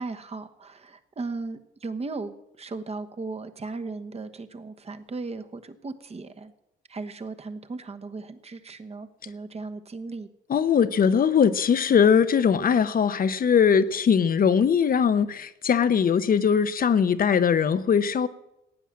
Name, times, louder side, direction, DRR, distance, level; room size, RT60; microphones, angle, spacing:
voice 1, 0.0-6.5 6.9-10.3, right 3 dB, 30° right, 1.2 m, -36 dB
voice 2, 10.5-18.3, left 7 dB, 45° left, 0.8 m, -21 dB
15.5 x 9.0 x 7.5 m
cardioid pair, 90°, 20 cm